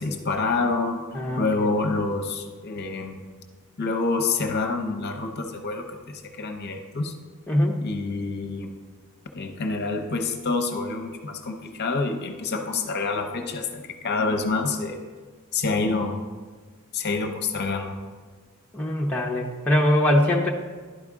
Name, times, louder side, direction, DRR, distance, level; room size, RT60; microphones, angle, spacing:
voice 1, 0.0-1.0 1.4-3.2 3.8-7.1 7.8-8.7 9.3-15.0 15.5-16.2 16.9-18.0, left 3 dB, 50° left, 5 dB, 0.6 m, -27 dB
voice 2, 1.1-1.5 7.5-7.8 18.7-20.5, left 1 dB, 5° left, -2 dB, 0.6 m, -22 dB
11.0 x 4.9 x 3.6 m, 1.4 s
head